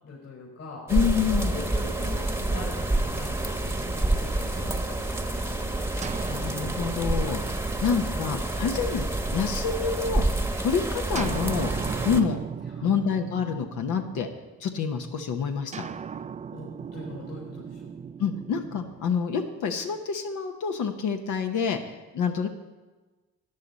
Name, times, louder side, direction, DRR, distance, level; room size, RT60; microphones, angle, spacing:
voice 1, 0.0-0.9 1.3-5.8 12.7-13.0 16.5-17.9, left 3 dB, 60° left, -4 dB, 4.4 m, -42 dB
voice 2, 0.9-1.6 6.3-7.4 7.8-9.0 9.3-10.2 10.6-11.7 12.0-12.4 12.8-14.3 14.6-15.9 18.2-21.8 22.1-22.5, left 6 dB, 75° left, 5 dB, 1.0 m, -27 dB
sound 1, 0.9-12.2, right 2 dB, 10° right, 1.0 m, -28 dB
sound 2, 6.0-9.8 11.1-14.7 15.7-19.9, right 7 dB, 25° right, 0.3 m, -38 dB
13.0 x 9.8 x 4.1 m, 1.2 s
cardioid pair, 90°, 30 cm